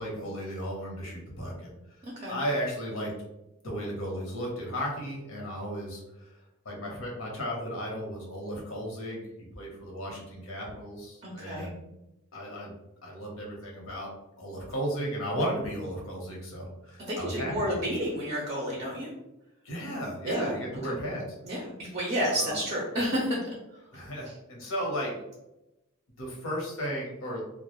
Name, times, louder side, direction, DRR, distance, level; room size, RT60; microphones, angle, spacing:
voice 1, 0.0-1.7 2.3-3.1 3.6-6.3 6.6-11.8 12.3-12.7 13.0-14.1 14.4-18.1 19.6-21.3 22.4-22.6 23.9-25.1 26.2-27.4, equal, 80° left, -2 dB, 0.9 m, -35 dB
voice 2, 2.0-2.3 11.2-11.7 17.1-19.1 20.2-20.5 21.4-21.6 21.9-23.4, equal, 30° right, -3 dB, 0.5 m, -30 dB
2.3 x 2.1 x 3.0 m, 0.92 s
head